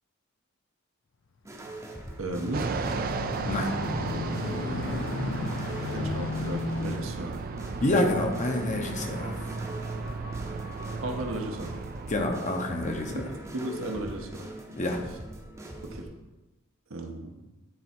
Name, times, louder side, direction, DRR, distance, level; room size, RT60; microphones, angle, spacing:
sound 1, 1.4-16.1, right 1 dB, 15° right, 0.8 m, -43 dB
sound 2, 1.8-10.4 11.0-11.2, left 3 dB, 65° left, 0.6 m, -36 dB
voice 1, 2.2-2.9 5.8-7.4 9.2-9.5 11.0-11.8 13.1-14.5 15.8-16.1 16.9-17.4, right 1 dB, 70° right, 3 dB, 0.9 m, -35 dB
Fixed-wing aircraft airplane, 2.5-13.4, right 4 dB, 45° right, 0.4 m, -35 dB
voice 2, 3.4-3.8 7.8-9.3 12.1-13.2 14.8-15.0, left 1 dB, 35° left, 3 dB, 0.8 m, -27 dB
9.7 x 3.6 x 4.4 m, 1.1 s
head